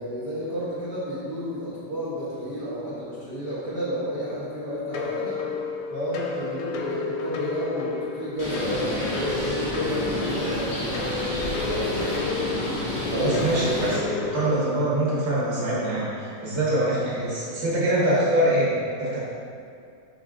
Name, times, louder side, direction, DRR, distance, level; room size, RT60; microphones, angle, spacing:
voice 1, 0.0-5.4 5.9-12.2, equal, 75° right, -10 dB, 0.9 m, -32 dB
sound 1, 4.9-14.5, left 4 dB, 80° left, 1.9 m, -32 dB
Bird, 8.4-13.9, left 1 dB, 35° left, 1.0 m, -29 dB
voice 2, 13.1-18.7 19.0-19.2, right 1 dB, 45° right, -8 dB, 1.8 m, -24 dB
5.5 x 5.4 x 3.7 m, 2.4 s
omnidirectional pair, 3.6 m